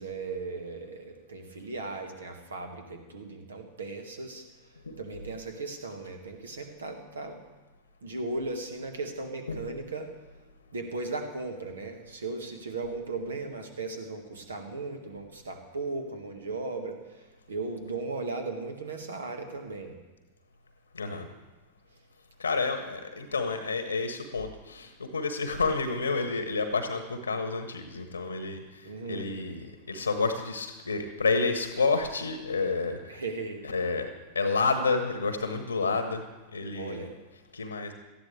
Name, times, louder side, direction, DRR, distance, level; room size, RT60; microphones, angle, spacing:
voice 1, 0.0-4.4 5.0-7.4 8.0-10.1 10.7-20.0 28.8-29.3 33.1-33.8 36.7-37.2, right 3 dB, 70° right, 5 dB, 1.9 m, -37 dB
voice 2, 20.9-21.3 22.4-33.2 33.6-34.1 34.3-36.2 36.5-37.1 37.5-37.9, left 4 dB, 80° left, 7 dB, 1.2 m, -29 dB
18.5 x 14.0 x 3.4 m, 1.1 s
figure-of-eight pair, 90°, 0 cm